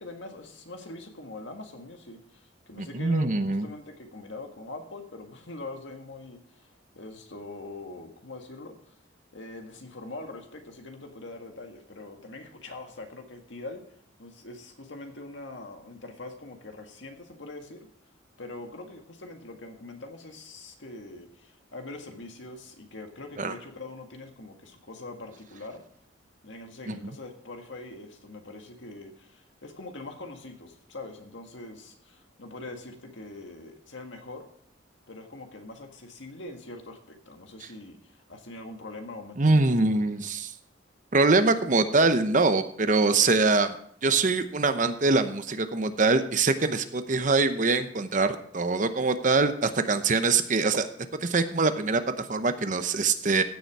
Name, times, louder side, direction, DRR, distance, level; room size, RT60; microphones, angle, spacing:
voice 1, 0.0-6.7 7.0-9.0 9.3-13.8 14.2-17.9 18.4-25.8 26.4-34.5 35.1-39.8 40.2-40.3, left 2 dB, 75° left, 4 dB, 1.8 m, -43 dB
voice 2, 2.8-3.7 23.4-23.5 26.9-27.0 39.4-40.5 41.1-43.8 44.0-50.9 51.2-53.4, right 3 dB, 40° right, 9 dB, 0.8 m, -23 dB
15.5 x 6.9 x 4.7 m, 0.62 s
head